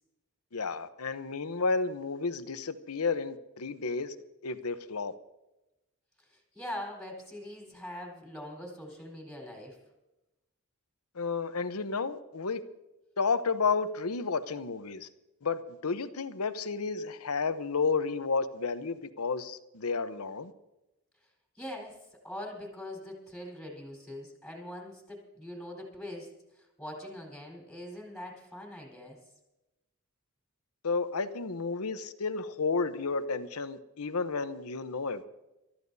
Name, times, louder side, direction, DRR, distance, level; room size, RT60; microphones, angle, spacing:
voice 1, 0.5-4.1 4.4-5.1 11.2-12.6 13.2-15.1 15.4-20.5 30.8-35.3, left 4 dB, 80° left, 0.9 m, -31 dB
voice 2, 6.3-9.8 21.6-22.0 22.2-26.3 26.6-29.2, left 1 dB, ahead, 4.3 m, -42 dB
28.5 x 14.0 x 2.7 m
head